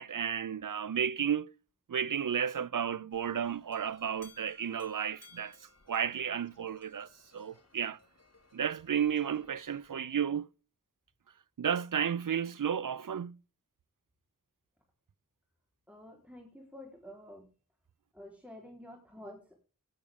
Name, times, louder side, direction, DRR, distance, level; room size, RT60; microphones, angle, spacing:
voice 1, 0.0-1.5 1.9-5.6 5.9-8.0 8.5-10.5 11.6-13.4, right 8 dB, 70° right, 0.5 m, -33 dB
sound 1, 3.1-9.9, left 3 dB, 50° left, 2.6 m, -61 dB
voice 2, 15.9-17.5 18.1-19.6, left 1 dB, 5° right, 3.8 m, -49 dB
17.0 x 8.4 x 3.6 m
wide cardioid pair, 40°, 33 cm